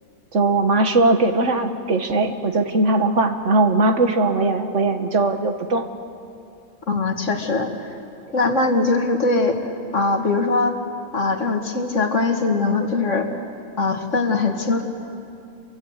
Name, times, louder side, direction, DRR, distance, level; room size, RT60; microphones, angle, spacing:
voice 1, 0.3-5.8, right 2 dB, 55° right, 7 dB, 1.6 m, -19 dB
voice 2, 6.9-7.9 8.3-9.6 9.9-10.8 11.1-13.3 13.8-14.8, left 3 dB, 55° left, 4 dB, 2.2 m, -21 dB
29.0 x 24.0 x 8.1 m, 2.6 s
omnidirectional pair, 1.5 m